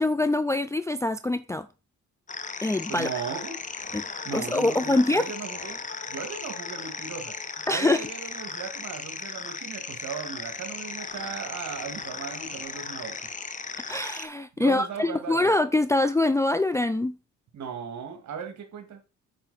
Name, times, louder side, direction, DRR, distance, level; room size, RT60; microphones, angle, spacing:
voice 1, 0.0-1.7 2.6-3.1 3.9-4.1 4.3-5.3 7.7-8.1 13.9-17.1, left 2 dB, 10° left, 0.4 m, -24 dB
sound 1, 2.3-14.3, left 4 dB, 25° left, 0.9 m, -36 dB
voice 2, 2.9-3.6 4.2-5.8 6.1-7.3 7.7-13.2 14.6-15.5 17.5-19.0, right 6 dB, 65° right, 2.0 m, -37 dB
8.8 x 5.5 x 4.0 m
cardioid pair, 90°, 30 cm